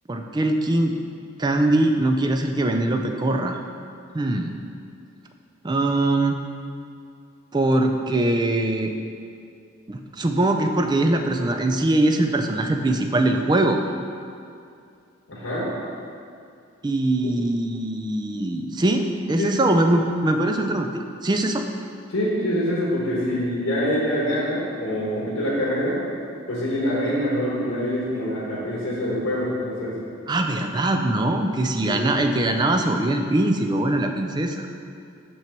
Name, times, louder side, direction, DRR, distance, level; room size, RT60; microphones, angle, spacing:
voice 1, 0.1-0.9 1.4-3.6 4.1-4.5 5.6-6.4 7.5-8.9 9.9-13.8 16.8-21.6 30.3-34.7, right 1 dB, 20° right, 4 dB, 0.4 m, -22 dB
voice 2, 15.3-15.7 17.2-17.3 19.4-19.6 22.1-26.0 26.5-30.0 31.8-32.0, equal, 75° left, -6 dB, 1.4 m, -25 dB
6.2 x 5.9 x 4.5 m, 2.4 s
head